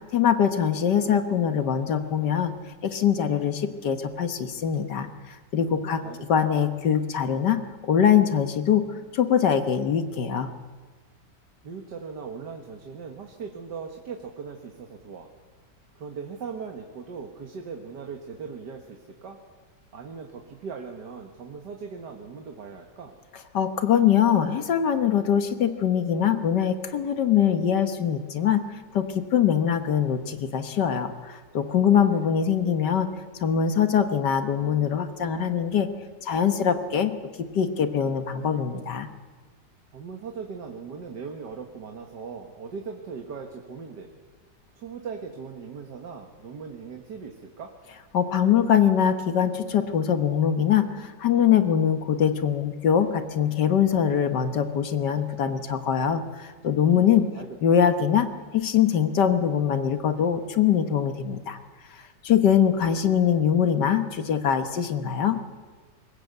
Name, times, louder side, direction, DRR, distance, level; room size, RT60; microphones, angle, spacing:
voice 1, 0.1-2.5 2.8-6.0 6.3-8.8 9.1-10.5 23.5-28.6 28.9-33.1 33.4-35.9 36.2-37.1 37.5-39.1 48.1-57.2 57.6-58.3 58.5-61.6 61.9-65.4, left 8 dB, 80° left, 8 dB, 1.9 m, -23 dB
voice 2, 5.8-6.2 11.6-15.3 16.0-19.4 19.9-23.2 32.1-32.5 39.9-44.1 44.8-47.7 56.8-57.8, right 5 dB, 80° right, 3 dB, 2.1 m, -39 dB
23.0 x 20.0 x 8.1 m, 1.4 s
omnidirectional pair, 1.8 m